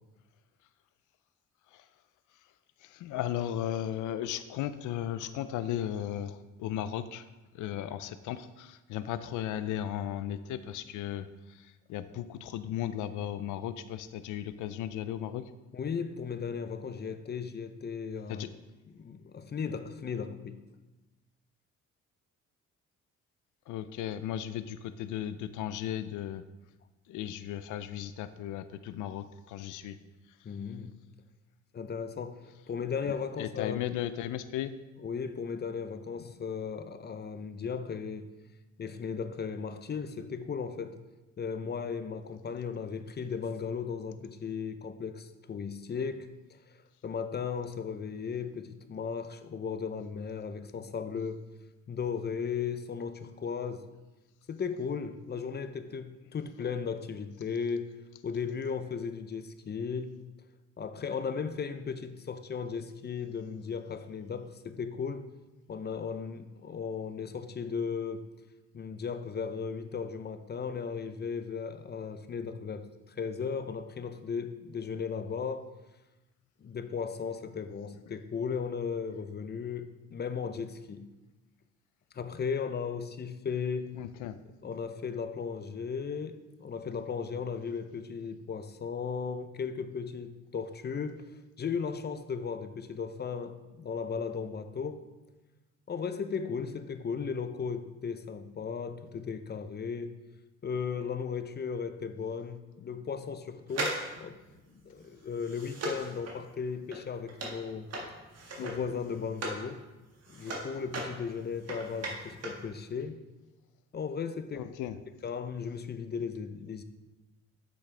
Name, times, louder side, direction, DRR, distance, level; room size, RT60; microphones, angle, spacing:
voice 1, 2.8-7.3 7.5-15.4 18.3-18.5 23.7-26.4 27.1-30.0 33.1-34.8 84.0-84.4 108.6-108.9 114.5-115.0, left 11 dB, 80° left, 12 dB, 0.5 m, -36 dB
voice 2, 15.7-18.5 18.9-20.6 30.4-31.0 31.7-33.9 35.0-38.3 38.8-41.0 41.4-46.3 46.7-51.4 51.9-53.9 54.5-57.9 58.2-60.2 60.8-65.3 65.7-68.2 68.7-75.7 76.6-81.1 82.1-84.0 84.6-95.0 95.9-100.1 100.6-104.4 104.7-107.9 108.6-109.8 110.3-113.2 113.9-114.7 115.2-116.8, left 6 dB, 35° left, 10 dB, 0.6 m, -36 dB
sound 1, 103.7-109.7 110.0-112.7 112.9-113.0, right 2 dB, 55° right, 1.6 m, -38 dB
8.3 x 6.3 x 3.3 m, 1.1 s
cardioid pair, 90°, 30 cm